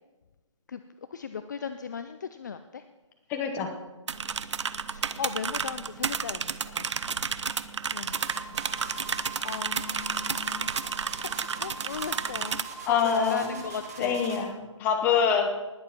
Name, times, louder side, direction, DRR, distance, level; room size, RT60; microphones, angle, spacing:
voice 1, 1.1-2.8 4.9-7.2 7.9-8.5 8.8-10.7 11.2-14.2, left 6 dB, 35° left, 10 dB, 0.5 m, -37 dB
voice 2, 3.3-3.7 12.9-13.6 14.0-15.5, left 7 dB, 10° left, 5 dB, 0.9 m, -25 dB
sound 1, 4.1-12.6, right 6 dB, 60° right, 0.7 m, -32 dB
sound 2, 8.1-14.5, right 4 dB, 30° right, 2.1 m, -41 dB
19.5 x 7.2 x 5.8 m, 1.1 s
hypercardioid pair, 165°, 17 cm